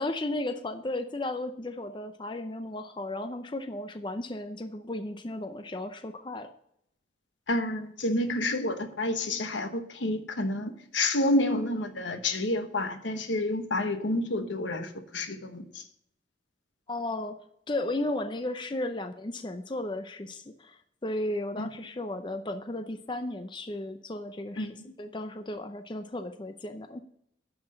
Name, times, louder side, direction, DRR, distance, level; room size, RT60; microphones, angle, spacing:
voice 1, 0.0-6.5 16.9-17.4 17.7-24.7 25.0-27.0, left 1 dB, 25° left, 0.5 m, -34 dB
voice 2, 7.5-15.8 21.6-21.7 24.6-24.7, left 1 dB, 80° left, 1.1 m, -29 dB
9.7 x 6.0 x 6.4 m
head